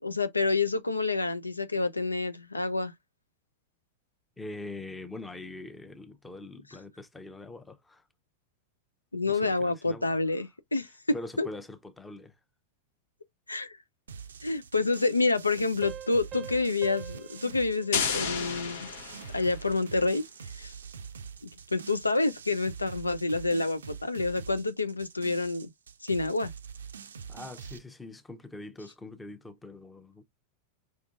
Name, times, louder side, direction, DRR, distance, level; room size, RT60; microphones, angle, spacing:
voice 1, 0.0-2.9 9.1-10.9 11.4-11.5 13.5-13.8 14.4-18.9 19.3-20.2 20.6-20.7 21.7-25.7 26.0-26.5, left 3 dB, 80° left, 0.4 m, -28 dB
voice 2, 4.4-8.0 9.3-10.1 11.1-12.3 27.3-30.2, left 2 dB, 10° left, 0.7 m, -43 dB
sound 1, 14.1-27.8, right 6 dB, 70° right, 0.4 m, -45 dB
sound 2, 15.8-19.1, right 9 dB, 25° right, 0.6 m, -45 dB
sound 3, 17.9-19.7, left 6 dB, 60° left, 0.9 m, -32 dB
5.1 x 3.6 x 2.4 m
figure-of-eight pair, 90°, 0 cm